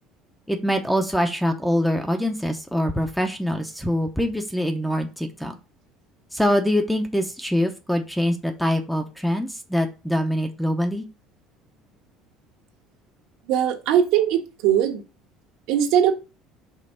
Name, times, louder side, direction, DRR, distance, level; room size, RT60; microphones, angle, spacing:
voice 1, 0.5-5.6 6.3-11.1, equal, ahead, 6 dB, 0.6 m, -24 dB
voice 2, 13.5-15.0 15.7-16.1, right 10 dB, 70° right, 3 dB, 1.3 m, -20 dB
5.3 x 3.5 x 5.5 m, 0.30 s
cardioid pair, 155°, 0 cm